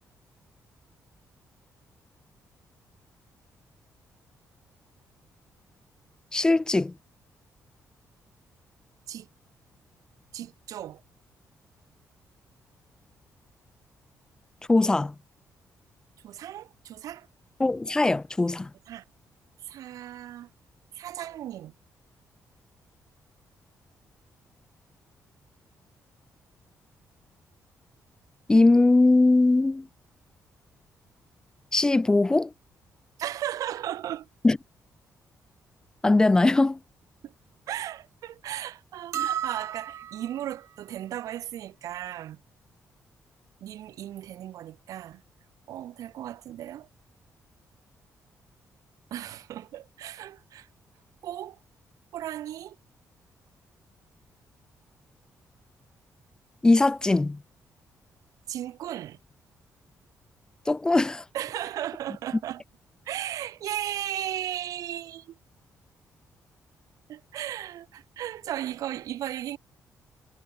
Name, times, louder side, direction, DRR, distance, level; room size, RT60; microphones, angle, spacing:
voice 1, 6.3-6.9 14.7-15.1 17.6-18.7 28.5-29.9 31.7-32.5 34.4-34.6 36.0-36.8 56.6-57.4 60.7-61.2, left 2 dB, 10° left, 0.4 m, -20 dB
voice 2, 10.3-11.0 16.2-17.3 18.9-19.0 19.6-20.5 20.9-21.7 33.2-34.3 37.2-37.3 37.7-42.4 43.6-45.2 45.7-46.9 49.1-50.7 51.2-51.6 52.1-52.8 58.5-59.2 61.3-62.6 63.0-65.4 67.1-69.6, right 12 dB, 80° right, 1.8 m, -36 dB
flask ping, 39.1-40.5, right 10 dB, 55° right, 0.6 m, -32 dB
cardioid pair, 165°, 6 cm